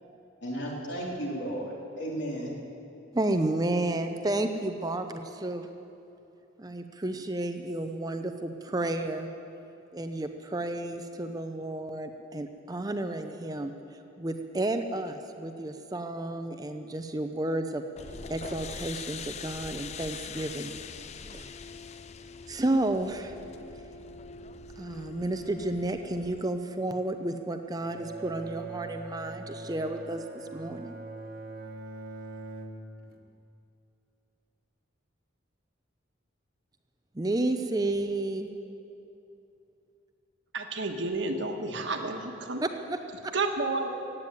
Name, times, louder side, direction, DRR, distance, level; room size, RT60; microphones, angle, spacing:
voice 1, 0.4-2.5, right 1 dB, 65° left, -2 dB, 3.1 m, -34 dB
voice 2, 3.1-5.7 6.6-9.3 9.9-13.7 14.2-17.8 18.3-20.8 21.3-21.5 22.5-23.4 24.8-31.0 37.1-38.5 42.6-43.3, right 2 dB, 20° right, 7 dB, 0.6 m, -31 dB
sound 1, 18.0-26.5, left 5 dB, 35° left, 0.4 m, -42 dB
Bowed string instrument, 27.8-33.3, right 3 dB, 50° right, 1.3 m, -42 dB
voice 3, 40.5-42.6 43.3-43.9, right 3 dB, 70° right, 4 dB, 1.4 m, -31 dB
15.5 x 9.0 x 9.1 m, 2.8 s
head